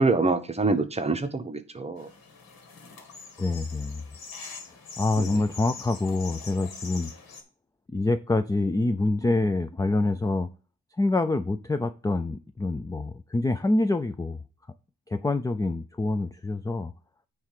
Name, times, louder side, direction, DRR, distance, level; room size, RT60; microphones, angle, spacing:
voice 1, 0.0-2.1 5.2-5.3, right 3 dB, 20° right, 1.0 m, -25 dB
sound 1, 2.0-7.4, left 4 dB, 80° left, 1.9 m, -43 dB
voice 2, 3.4-4.0 5.0-7.1 7.9-10.5 11.0-14.4 15.1-16.9, left 2 dB, 10° left, 0.4 m, -26 dB
9.3 x 3.2 x 6.6 m
cardioid pair, 110°, 35 cm